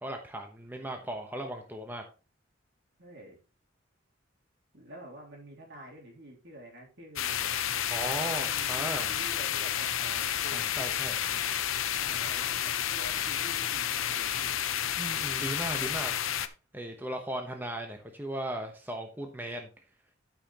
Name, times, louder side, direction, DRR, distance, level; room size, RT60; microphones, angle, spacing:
voice 1, 0.0-2.0 7.9-9.1 10.5-11.2 15.0-16.1 16.7-19.7, right 1 dB, 10° right, 3 dB, 1.0 m, -37 dB
voice 2, 3.0-3.4 4.7-7.6 8.0-10.6 11.2-11.4 11.9-14.6, right 1 dB, 60° right, -1 dB, 3.2 m, -48 dB
sound 1, 7.2-16.5, left 10 dB, 85° left, 0.7 m, -31 dB
12.5 x 5.7 x 3.0 m, 0.31 s
head